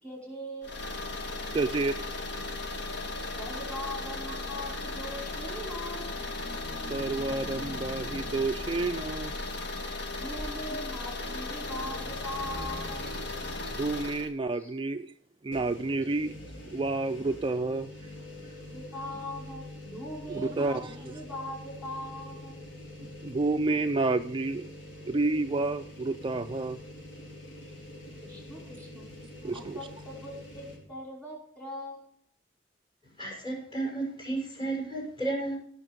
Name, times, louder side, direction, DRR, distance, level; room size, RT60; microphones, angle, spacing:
voice 1, 0.0-0.7 3.4-6.1 10.1-13.1 14.5-14.7 18.7-22.6 28.2-29.1 29.5-32.0, left 1 dB, 5° left, -3 dB, 5.2 m, -40 dB
sound 1, 0.6-14.3, left 2 dB, 60° left, 1.6 m, -36 dB
voice 2, 1.5-2.2 4.3-4.4 6.9-9.3 13.7-15.1 15.4-16.3 16.7-17.9 20.3-20.9 23.0-24.7 25.1-26.8 29.4-29.8, right 3 dB, 25° right, 7 dB, 0.4 m, -30 dB
sound 2, 5.8-10.2, left 1 dB, 45° left, 1.9 m, -46 dB
sound 3, 11.6-13.8 14.2-14.3 15.5-30.8, left 1 dB, 80° left, 4.5 m, -45 dB
voice 3, 33.2-35.6, right 2 dB, 25° left, -1 dB, 6.4 m, -32 dB
17.0 x 6.4 x 5.2 m, 0.63 s
head